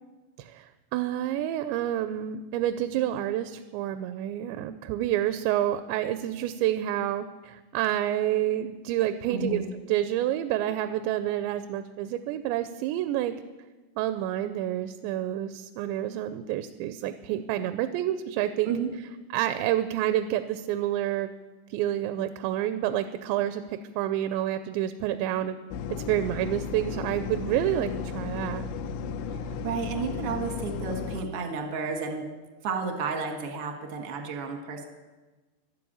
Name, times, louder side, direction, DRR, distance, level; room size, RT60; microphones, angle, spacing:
voice 1, 0.4-9.6 9.9-13.3 14.0-18.7 19.3-21.3 21.7-25.6 25.9-28.7, right 12 dB, 85° right, 10 dB, 2.8 m, -28 dB
voice 2, 9.3-9.7 18.6-18.9 29.6-32.3 32.6-34.8, right 5 dB, 65° right, 3 dB, 1.4 m, -32 dB
sound 1, 25.7-31.2, left 5 dB, 85° left, 3.0 m, -34 dB
12.5 x 11.0 x 8.6 m, 1.2 s
omnidirectional pair, 5.1 m